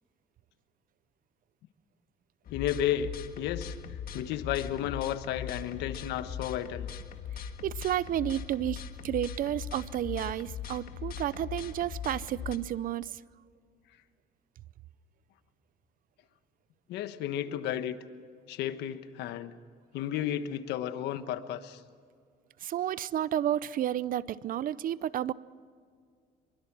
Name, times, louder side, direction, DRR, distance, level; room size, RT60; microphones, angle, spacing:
voice 1, 2.5-3.8 4.1-6.9 16.9-18.0 18.5-19.6 19.9-21.8, left 10 dB, 85° left, 1.3 m, -33 dB
sound 1, 2.5-12.6, left 8 dB, 60° left, 1.6 m, -40 dB
voice 2, 7.6-13.2 22.6-25.3, right 11 dB, 55° right, 0.6 m, -31 dB
25.0 x 23.5 x 6.1 m
cardioid pair, 110°, 17 cm